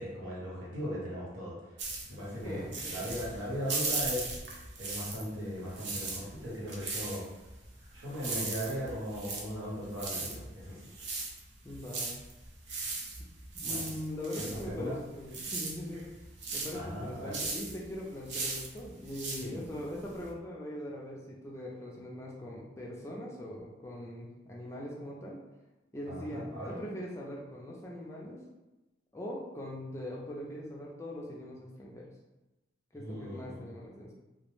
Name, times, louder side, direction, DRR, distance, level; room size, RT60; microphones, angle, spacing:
voice 1, 0.0-4.4 4.8-7.2 7.9-10.9 13.6-13.9 14.4-15.0 16.7-17.4 19.4-19.6 26.1-26.8 32.9-33.7, equal, 85° right, -6 dB, 1.0 m, -38 dB
sound 1, 1.8-5.4 5.7-20.3, right 3 dB, 60° right, 0.4 m, -38 dB
voice 2, 2.4-3.1 11.6-12.1 13.5-16.1 16.5-25.4 25.9-28.4 29.1-32.1 32.9-34.1, left 1 dB, 15° left, -3 dB, 0.3 m, -41 dB
2.2 x 2.0 x 3.0 m, 1.0 s
head